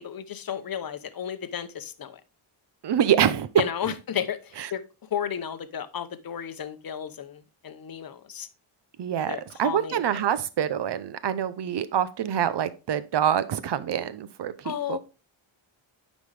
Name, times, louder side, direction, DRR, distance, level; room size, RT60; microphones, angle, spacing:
voice 1, 0.0-2.2 3.6-8.5 9.2-10.2 14.6-15.0, left 9 dB, 45° left, 0.8 m, -33 dB
voice 2, 2.8-3.5 9.0-15.0, right 9 dB, 55° right, 0.7 m, -26 dB
9.3 x 5.2 x 3.3 m
wide cardioid pair, 125°, 49 cm